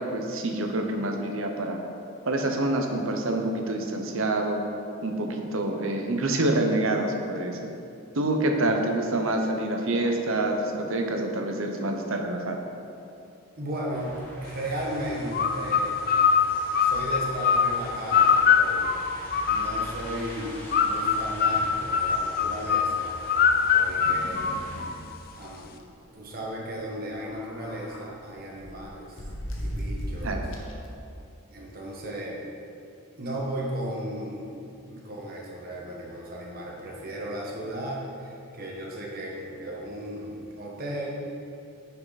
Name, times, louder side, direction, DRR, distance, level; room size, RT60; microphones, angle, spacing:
voice 1, 0.0-1.8 2.3-4.6 5.0-7.6 8.1-12.6 30.2-30.4, right 2 dB, 65° right, 3 dB, 0.9 m, -27 dB
voice 2, 13.6-16.0 16.8-18.9 19.5-23.1 23.7-24.7 25.3-25.8 26.1-29.2 29.6-30.5 31.5-32.4 33.2-34.6 34.9-41.2, equal, 40° right, -3 dB, 1.3 m, -35 dB
sound 1, 13.9-24.9, equal, 10° left, 1.4 m, -42 dB
sound 2, 15.3-20.1 20.7-25.2, left 6 dB, 40° left, 0.3 m, -23 dB
sound 3, 23.9-24.9 25.2-25.3 25.6-25.8 27.0-28.1 28.6-30.9, equal, 60° left, 1.0 m, -36 dB
9.4 x 5.8 x 4.1 m, 2.6 s
head